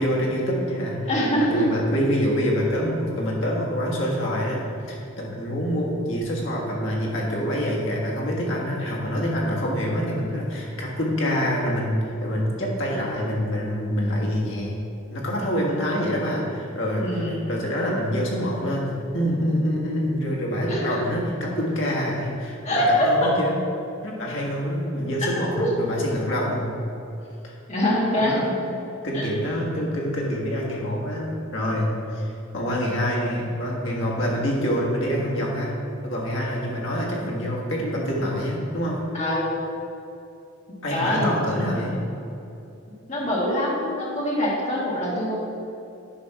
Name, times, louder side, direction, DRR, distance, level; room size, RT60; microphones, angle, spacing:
voice 1, 0.0-1.0 1.4-14.8 15.1-23.5 24.0-26.8 27.4-27.5 28.1-28.5 29.0-35.8 36.0-39.0 40.8-42.0, equal, 60° left, -3 dB, 1.5 m, -26 dB
voice 2, 1.1-1.7 17.0-17.4 20.7-21.0 22.6-23.3 25.6-25.7 27.7-28.4 29.1-29.3 39.1-39.5 40.9-41.3 42.9-45.4, left 1 dB, 35° left, -5 dB, 1.6 m, -24 dB
9.7 x 3.4 x 5.7 m, 2.7 s
head